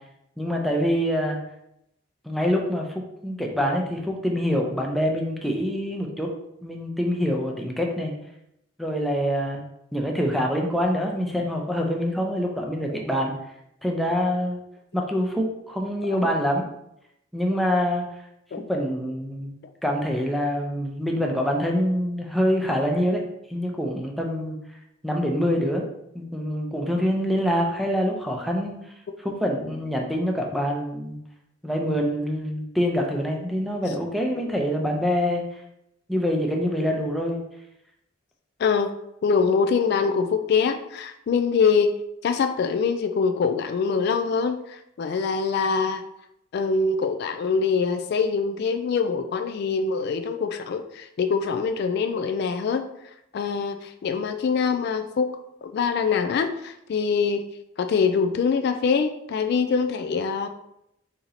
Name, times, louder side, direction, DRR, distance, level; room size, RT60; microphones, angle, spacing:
voice 1, 0.4-1.4 2.2-6.3 6.6-8.1 8.8-9.6 9.9-13.3 13.8-14.6 14.9-16.6 17.3-18.0 18.7-19.5 19.8-23.2 23.5-24.6 25.0-25.9 26.1-28.7 29.2-31.2 31.6-35.4 36.1-37.4, equal, ahead, 0 dB, 0.5 m, -25 dB
voice 2, 38.6-38.9 39.2-41.9 42.2-46.0 46.5-52.9 53.3-55.3 55.6-57.4 57.8-60.5, left 5 dB, 55° left, 7 dB, 0.3 m, -24 dB
4.3 x 2.8 x 3.9 m, 0.81 s
head